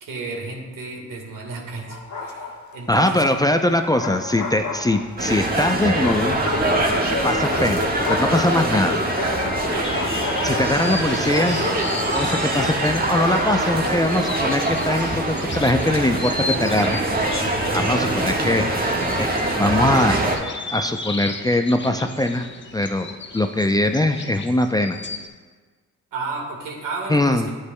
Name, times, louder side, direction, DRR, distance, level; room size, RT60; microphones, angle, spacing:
voice 1, 0.0-3.5 26.1-27.4, right 3 dB, 75° right, 0 dB, 1.6 m, -33 dB
Bark, 1.9-2.8 3.7-5.3 6.0-14.1, left 4 dB, 60° left, 1.1 m, -31 dB
voice 2, 2.9-6.4 7.2-9.0 10.4-11.6 12.1-17.0 17.7-18.7 19.2-19.3 19.6-20.2 20.7-22.5 22.7-25.0 27.1-27.5, left 1 dB, 10° left, 6 dB, 0.5 m, -21 dB
sound 1, 5.2-20.4, right 1 dB, 25° right, 1.4 m, -23 dB
sound 2, 9.6-25.3, left 3 dB, 35° left, 0.8 m, -35 dB
9.6 x 8.1 x 2.2 m, 1.4 s
supercardioid pair, 55°, 33 cm